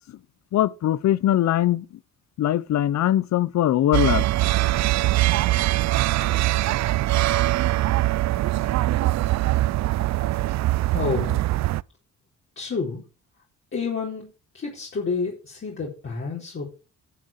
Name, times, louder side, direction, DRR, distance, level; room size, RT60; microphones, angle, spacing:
voice 1, 0.5-1.9 2.4-4.2, left 12 dB, 65° left, 0.8 m, -21 dB
sound 1, 3.9-11.8, right 16 dB, 65° right, 0.5 m, -22 dB
voice 2, 10.9-11.4 12.6-13.0 13.7-14.3 14.5-16.7, left 4 dB, 40° left, 4.2 m, -29 dB
11.5 x 6.4 x 6.8 m
cardioid pair, 90°, 30 cm